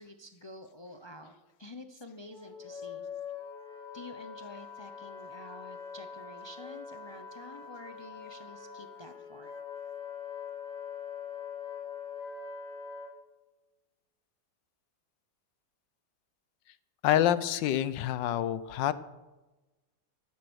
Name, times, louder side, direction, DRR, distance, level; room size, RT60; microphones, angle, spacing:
voice 1, 0.0-3.1 3.9-9.5, left 1 dB, 45° left, 7 dB, 0.3 m, -49 dB
Wind instrument woodwind instrument, 2.3-13.1, left 6 dB, ahead, 5.2 m, -43 dB
voice 2, 17.0-18.9, left 11 dB, 75° left, 15 dB, 1.3 m, -27 dB
14.0 x 12.0 x 6.3 m, 1.1 s
omnidirectional pair, 2.1 m